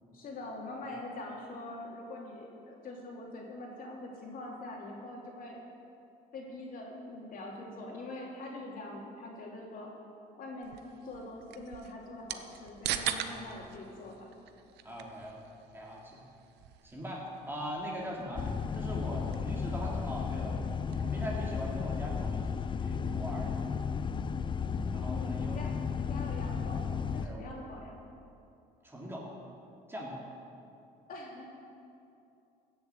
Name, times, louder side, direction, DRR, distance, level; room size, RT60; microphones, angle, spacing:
voice 1, 0.1-5.6 6.3-9.9 10.4-10.8 11.0-14.3 25.1-25.7 26.0-26.8 27.1-28.0 31.1-31.4, left 2 dB, 55° left, -2 dB, 2.9 m, -44 dB
sound 1, 10.6-21.3, right 10 dB, 80° right, 0.8 m, -43 dB
voice 2, 12.9-13.6 14.8-16.2 16.8-18.5 18.7-20.6 21.0-23.7 24.0-24.1 24.9-25.6 27.2-27.5 28.8-29.3 29.9-30.2, equal, 15° right, -4 dB, 3.1 m, -41 dB
sound 2, 18.4-27.3, left 6 dB, 30° left, 0.5 m, -34 dB
15.5 x 7.1 x 8.0 m, 2.6 s
cardioid pair, 110°, 17 cm